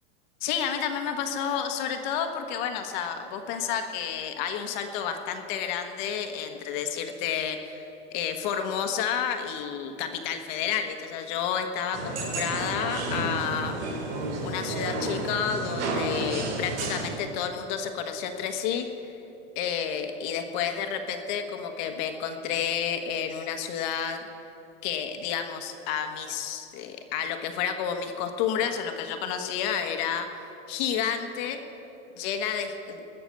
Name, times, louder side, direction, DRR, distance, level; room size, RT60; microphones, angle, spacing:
voice 1, 0.4-13.7 14.4-19.1 19.5-24.2 24.8-31.6 32.2-33.0, left 8 dB, 45° left, 6 dB, 1.3 m, -30 dB
sound 1, 11.9-17.2, right 2 dB, 90° right, 3.5 m, -31 dB
20.0 x 6.9 x 8.6 m, 2.9 s
supercardioid pair, 170°, 33 cm